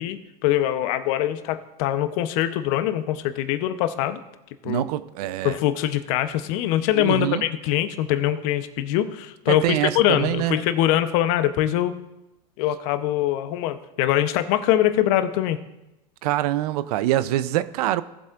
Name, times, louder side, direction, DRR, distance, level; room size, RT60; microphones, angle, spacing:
voice 1, 0.0-4.2 4.6-4.8 5.4-12.0 12.6-15.6, left 12 dB, 60° left, 0.9 m, -23 dB
voice 2, 4.6-5.5 6.9-7.4 9.5-10.6 16.2-18.0, right 14 dB, 65° right, 0.6 m, -24 dB
18.0 x 7.6 x 2.5 m
hypercardioid pair, 105°, 21 cm